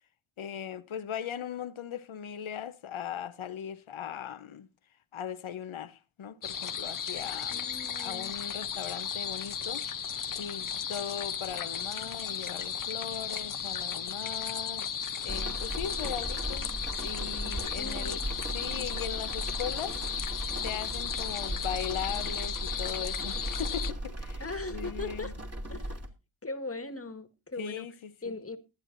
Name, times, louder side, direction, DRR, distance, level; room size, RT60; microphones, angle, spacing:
voice 1, 0.4-4.7 5.1-7.7 8.0-9.9 10.4-14.9 15.2-18.2 18.5-24.4 24.7-25.3 27.6-28.3, left 8 dB, 85° left, 1.0 m, -39 dB
sound 1, 6.4-23.9, left 7 dB, 45° left, 0.7 m, -35 dB
voice 2, 7.5-8.4 17.8-18.4 24.4-25.3 25.7-26.0 26.4-27.9 28.2-28.6, left 3 dB, 30° left, 1.7 m, -39 dB
sound 2, 15.3-26.1, right 1 dB, 30° right, 2.8 m, -37 dB
21.5 x 9.4 x 2.6 m
cardioid pair, 45°, 47 cm